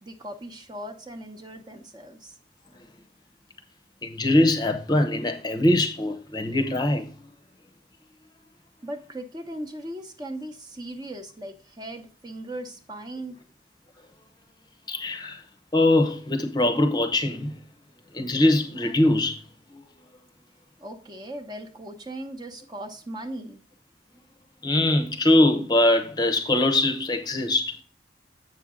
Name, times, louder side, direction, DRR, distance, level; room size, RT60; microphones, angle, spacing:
voice 1, 0.0-2.3 8.8-13.4 20.8-23.6, right 1 dB, 25° right, 0.9 m, -38 dB
voice 2, 4.0-7.1 14.9-15.4 15.7-17.6 18.1-19.4 19.7-19.8 24.6-27.8, left 1 dB, 25° left, 0.8 m, -22 dB
7.8 x 6.1 x 3.7 m
head